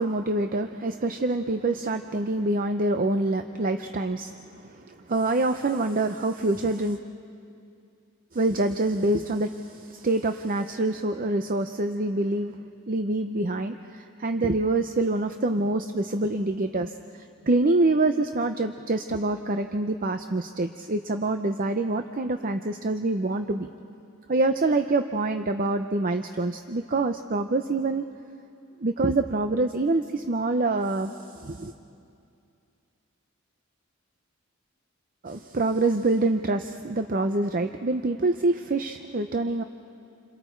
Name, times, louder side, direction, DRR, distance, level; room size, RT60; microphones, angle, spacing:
voice 1, 0.0-7.0 8.3-12.5 12.9-23.7 24.3-28.0 28.8-31.7 35.2-39.6, right 2 dB, 40° right, 7 dB, 0.7 m, -26 dB
29.0 x 26.5 x 4.6 m, 2.5 s
head